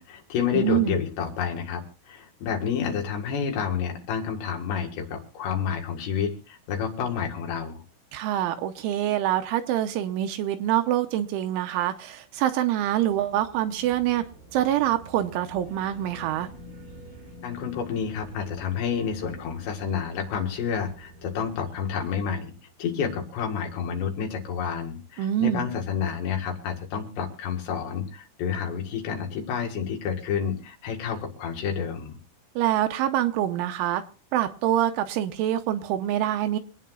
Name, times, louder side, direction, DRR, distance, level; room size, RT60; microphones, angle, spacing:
voice 1, 0.0-1.8 2.1-7.8 17.4-22.5 22.8-32.2, left 7 dB, 65° left, 2 dB, 3.8 m, -29 dB
voice 2, 0.5-1.0 8.1-14.2 14.5-16.5 25.2-25.7 32.6-34.0 34.3-36.6, right 12 dB, 80° right, 8 dB, 3.1 m, -25 dB
sound 1, 12.8-23.0, equal, 45° right, 9.5 m, -48 dB
26.5 x 9.2 x 2.4 m, 0.36 s
omnidirectional pair, 5.8 m